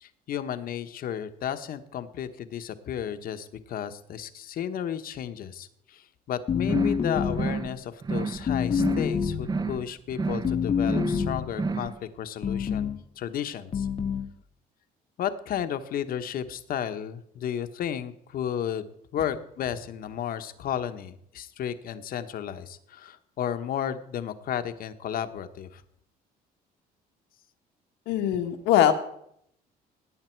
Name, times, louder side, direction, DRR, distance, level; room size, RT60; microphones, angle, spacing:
voice 1, 0.0-12.9 13.2-13.9 15.2-25.8, left 9 dB, 60° left, 9 dB, 1.1 m, -33 dB
sound 1, 6.5-7.6 8.5-9.6 10.4-11.5 12.4-13.0 13.7-14.3, left 7 dB, 35° left, 0.8 m, -27 dB
sound 2, 6.6-7.1 7.3-7.7 8.0-8.5 8.7-9.2 9.4-9.9 10.1-10.5 10.8-11.3 11.5-11.9, right 4 dB, 25° right, 0.6 m, -30 dB
voice 2, 28.1-28.9, left 11 dB, 85° left, 5 dB, 1.4 m, -21 dB
17.0 x 9.0 x 4.5 m, 0.72 s
cardioid pair, 110°, 17 cm